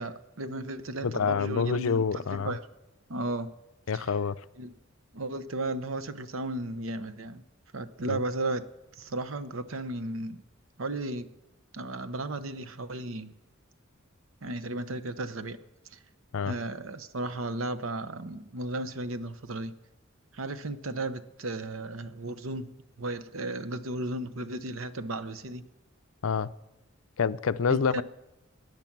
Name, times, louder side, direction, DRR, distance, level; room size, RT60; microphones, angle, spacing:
voice 1, 0.0-2.6 3.1-3.5 3.9-4.0 4.6-4.7 5.1-7.4 7.7-8.6 9.0-10.4 10.8-11.3 11.7-13.3 14.4-15.6 15.9-16.0 16.5-19.7 20.3-22.7 23.0-25.6 27.7-28.0, right 2 dB, 75° right, 0.9 m, -34 dB
voice 2, 1.0-2.6 3.9-4.4 8.1-8.2 16.3-16.5 26.2-26.5 27.2-28.0, left 5 dB, 80° left, 0.5 m, -27 dB
17.5 x 10.5 x 6.0 m
head